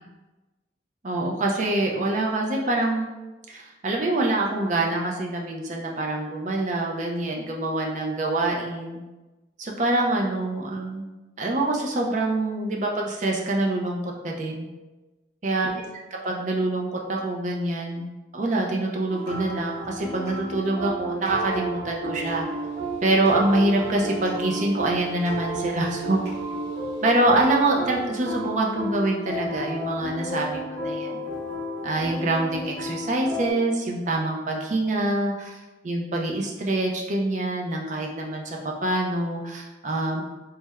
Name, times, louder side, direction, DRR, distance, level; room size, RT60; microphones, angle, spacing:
voice 1, 1.0-3.1 3.5-9.0 9.6-11.0 11.4-14.7 15.4-15.8 16.2-18.1 18.3-22.5 23.0-26.2 27.0-31.2 31.8-40.2, right 2 dB, 40° right, 0 dB, 0.5 m, -25 dB
Wonderful - Calm Beautiful Piano Loop, 19.1-33.5, right 1 dB, 60° right, 1.2 m, -32 dB
3.2 x 2.1 x 3.4 m, 1.1 s
head